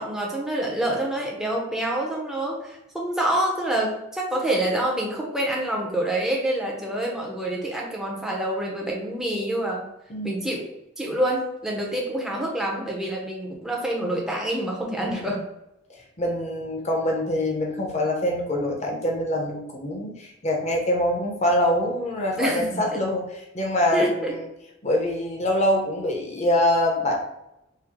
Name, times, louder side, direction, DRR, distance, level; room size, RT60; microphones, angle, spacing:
voice 1, 0.0-9.8 10.2-10.7 11.0-15.4 22.4-23.0 23.9-24.3, right 1 dB, 5° right, -2 dB, 0.8 m, -27 dB
voice 2, 10.1-10.4 15.0-15.3 16.2-24.5 24.8-27.2, left 1 dB, 35° left, 0 dB, 0.8 m, -24 dB
4.6 x 2.3 x 3.6 m, 0.87 s
head